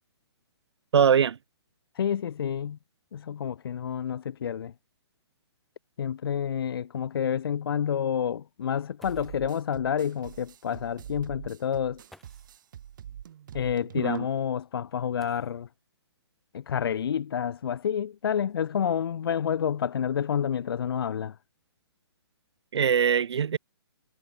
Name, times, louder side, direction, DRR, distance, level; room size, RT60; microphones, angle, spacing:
voice 1, 0.9-1.4 14.0-14.3 22.7-23.6, right 7 dB, 75° right, 0.7 m, -22 dB
voice 2, 2.0-2.8 3.1-4.7 6.0-12.0 13.5-15.7 16.5-21.3, left 8 dB, 60° left, 0.9 m, -29 dB
sound 1, 5.1-5.2 5.6-5.7 6.3-6.4 8.7-8.8 9.0-9.6 10.8-10.9 12.1-12.7 15.1-15.9 17.3-17.4 18.1-19.6 20.2-20.6 21.0-21.4, left 1 dB, ahead, 5.3 m, -60 dB
sound 2, 9.0-14.2, right 10 dB, 50° right, 1.5 m, -45 dB
hypercardioid pair, 165°, 14 cm